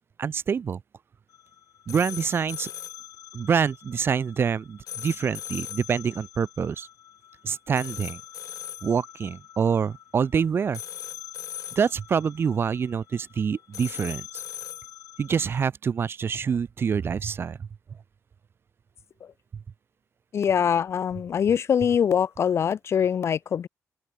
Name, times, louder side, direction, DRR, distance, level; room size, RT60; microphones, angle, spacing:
voice 1, 0.2-0.8 1.9-2.7 3.3-6.9 7.4-8.2 8.8-10.8 11.8-14.4 15.2-17.7, right 6 dB, 40° right, 0.6 m, -26 dB
sound 1, 1.3-15.7, left 11 dB, 80° left, 0.8 m, -41 dB
voice 2, 20.3-23.7, left 8 dB, 50° left, 0.5 m, -23 dB
open air
wide cardioid pair, 140°, 6 cm